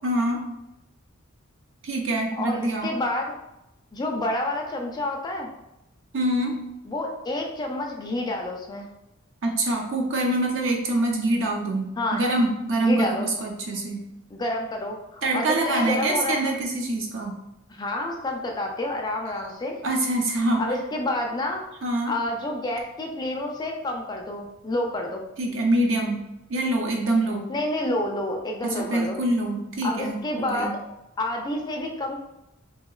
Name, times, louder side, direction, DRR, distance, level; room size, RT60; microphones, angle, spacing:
voice 1, 0.0-0.4 1.8-2.9 6.1-6.6 9.4-14.0 15.2-17.3 19.3-19.4 19.8-20.6 21.8-22.1 25.4-26.2 26.5-27.4 28.6-30.7, right 1 dB, 65° right, 1 dB, 0.6 m, -25 dB
voice 2, 2.4-3.3 3.9-5.5 6.9-8.9 12.0-12.2 12.8-13.3 14.3-16.5 17.8-19.8 20.6-21.6 22.1-25.2 27.5-29.2 29.8-30.8 31.2-32.2, left 1 dB, 20° left, 2 dB, 0.3 m, -29 dB
2.8 x 2.8 x 2.3 m, 0.90 s
head